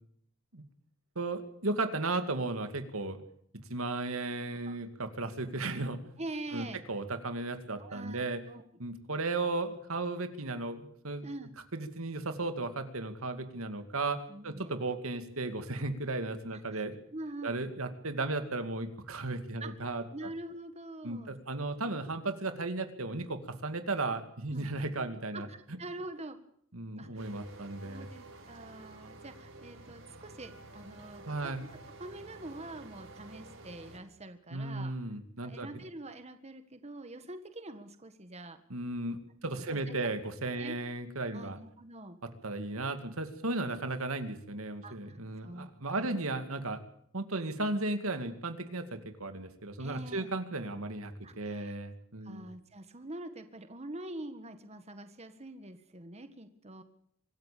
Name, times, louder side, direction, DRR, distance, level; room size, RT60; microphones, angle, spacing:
voice 1, 1.2-3.2 3.7-6.0 6.5-8.4 8.8-11.3 11.7-14.2 14.4-17.0 17.4-20.0 21.0-25.8 26.7-28.1 31.3-31.6 34.5-35.7 38.7-41.6 42.4-46.8 47.1-52.5, right 2 dB, 90° right, 8 dB, 2.4 m, -35 dB
voice 2, 6.2-6.8 7.8-8.6 11.2-11.5 14.3-14.7 16.7-16.9 17.1-17.6 19.6-21.6 24.5-24.7 25.3-26.4 27.0-27.2 27.8-31.5 32.0-34.9 35.4-38.6 39.4-39.9 40.6-40.8 41.3-42.2 44.8-45.7 46.0-46.2 49.8-50.3 51.2-51.8 52.2-56.8, right 2 dB, 30° right, 9 dB, 1.7 m, -45 dB
sound 1, 27.1-34.0, right 2 dB, 65° right, 7.8 m, -51 dB
25.5 x 14.0 x 8.5 m, 0.66 s
head